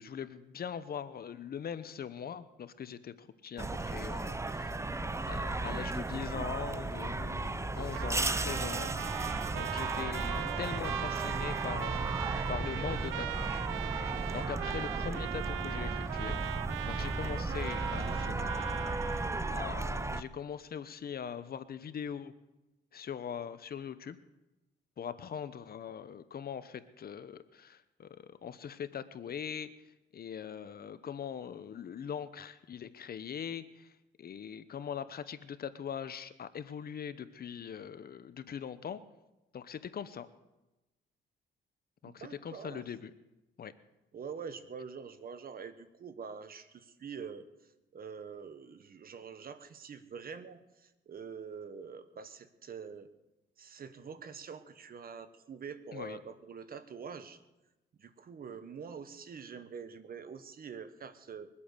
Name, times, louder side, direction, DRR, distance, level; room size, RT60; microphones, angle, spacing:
voice 1, 0.0-8.9 9.2-12.1 12.5-16.4 16.9-18.5 19.5-22.3 22.9-24.2 25.0-39.0 39.5-40.3 42.0-43.1 43.6-43.7 55.9-56.2, left 8 dB, 50° left, 13 dB, 0.9 m, -42 dB
sound 1, 3.6-20.2, right 2 dB, 15° right, 0.7 m, -35 dB
Trumpet, 7.9-19.6, right 15 dB, 85° right, 0.6 m, -39 dB
voice 2, 42.0-42.8 44.1-47.5 47.9-53.1 53.6-57.4 58.0-61.5, right 6 dB, 50° right, 12 dB, 1.3 m, -45 dB
22.5 x 8.5 x 6.8 m, 1.0 s
cardioid pair, 90°, 20 cm